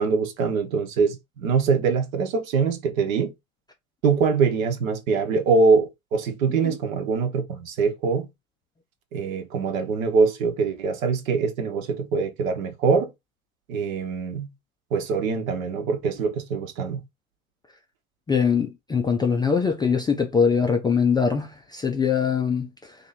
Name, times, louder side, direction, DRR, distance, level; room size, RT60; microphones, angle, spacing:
voice 1, 0.0-3.3 4.0-8.3 9.1-13.1 13.7-14.5 14.9-17.0, right 5 dB, 65° right, 1.1 m, -23 dB
voice 2, 18.3-23.0, left 6 dB, 10° left, 0.3 m, -22 dB
2.9 x 2.7 x 4.2 m
hypercardioid pair, 85°, 43 cm